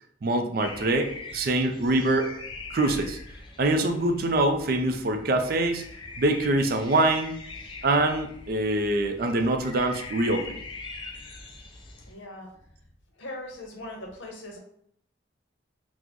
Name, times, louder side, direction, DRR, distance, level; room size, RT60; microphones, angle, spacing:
voice 1, 0.2-2.3 2.7-3.2 3.6-5.9 6.2-7.4 7.8-10.5, right 2 dB, 50° right, 5 dB, 0.4 m, -24 dB
sound 1, 0.6-12.1, left 3 dB, 25° left, 0.3 m, -42 dB
voice 2, 12.1-12.5 13.2-14.6, left 1 dB, 80° left, 1 dB, 0.7 m, -40 dB
4.2 x 2.0 x 2.9 m, 0.67 s
head